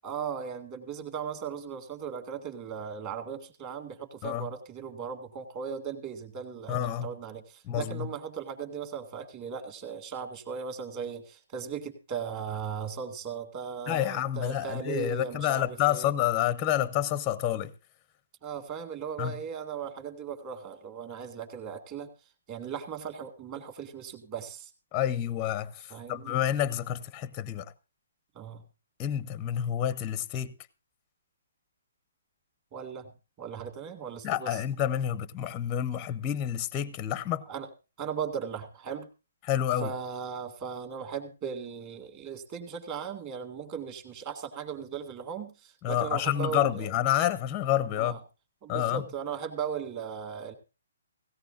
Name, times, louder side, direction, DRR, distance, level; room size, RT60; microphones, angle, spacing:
voice 1, 0.0-16.1 18.4-22.1 22.5-24.7 25.9-26.4 28.3-28.6 32.7-33.1 33.4-34.6 37.5-37.7 38.0-39.1 39.8-46.9 48.0-48.2 48.6-50.5, right 7 dB, 25° right, 2.1 m, -37 dB
voice 2, 6.7-7.1 7.7-8.1 13.9-17.7 19.2-19.4 24.9-27.7 29.0-30.5 34.2-37.4 39.4-39.9 45.8-48.2 48.7-49.0, left 11 dB, 15° left, 0.6 m, -29 dB
17.5 x 16.5 x 2.5 m
hypercardioid pair, 165°, 0 cm